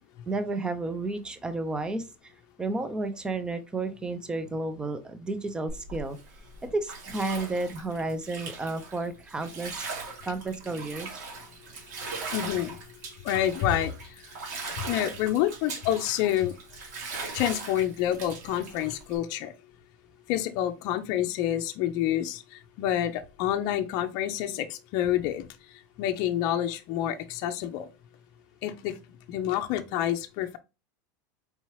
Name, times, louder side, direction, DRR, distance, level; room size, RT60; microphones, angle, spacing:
voice 1, 0.3-2.3 2.6-6.2 6.6-9.8 10.2-11.2, right 2 dB, 10° right, 0.5 m, -32 dB
Bathtub (filling or washing), 5.7-19.2, right 4 dB, 80° right, 1.8 m, -40 dB
voice 2, 12.3-12.8 13.2-13.9 14.9-16.5 17.3-19.5 20.3-25.5 26.0-27.9 28.6-28.9 29.3-30.6, left 11 dB, 45° left, 0.5 m, -28 dB
4.6 x 2.8 x 3.1 m
supercardioid pair, 155°, 10 cm